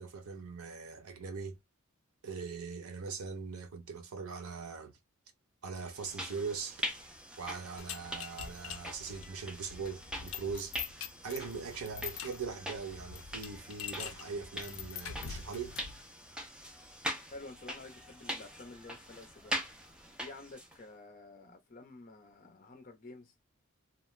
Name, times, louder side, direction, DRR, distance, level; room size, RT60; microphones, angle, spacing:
voice 1, 0.0-1.6 2.2-4.9 5.6-6.9 7.4-10.7 11.2-15.8, right 5 dB, 85° right, 0.6 m, -41 dB
sound 1, 5.9-20.8, equal, 5° right, 0.4 m, -43 dB
sound 2, 7.8-16.0, left 8 dB, 70° left, 0.4 m, -45 dB
voice 2, 17.3-19.6 20.2-23.3, left 2 dB, 40° left, 0.7 m, -50 dB
2.4 x 2.1 x 3.0 m
head